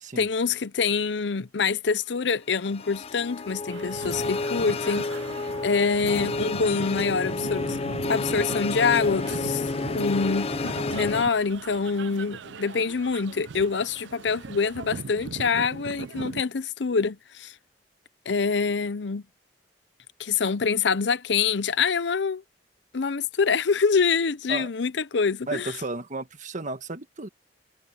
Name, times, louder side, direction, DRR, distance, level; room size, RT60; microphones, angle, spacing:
voice 1, 0.2-5.0 5.6-7.8 8.1-9.7 9.9-17.5 18.3-19.2 20.2-22.4 22.9-25.7, left 5 dB, 75° left, 0.7 m, -25 dB
sound 1, 2.6-11.2, left 3 dB, 35° left, 0.5 m, -30 dB
sound 2, 3.7-16.4, right 5 dB, 90° right, 0.5 m, -39 dB
voice 2, 25.5-27.3, right 3 dB, 45° right, 1.4 m, -33 dB
head